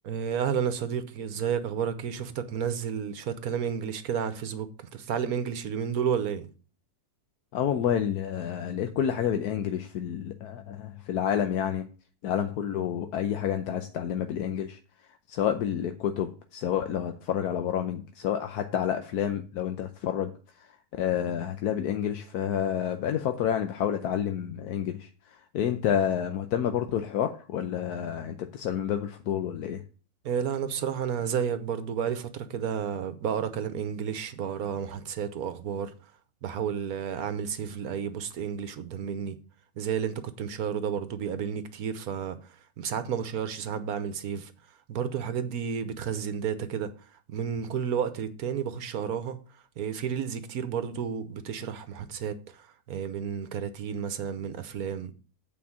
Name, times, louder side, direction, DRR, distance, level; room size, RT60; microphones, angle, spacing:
voice 1, 0.0-6.5 30.2-35.9 36.4-39.4 39.8-44.5 44.9-46.9 47.3-49.4 49.8-55.1, right 7 dB, 70° right, 1.4 m, -31 dB
voice 2, 7.5-11.9 12.2-14.8 15.3-20.3 20.6-29.8, left 9 dB, 80° left, 1.2 m, -29 dB
8.4 x 4.6 x 7.2 m
omnidirectional pair, 1.6 m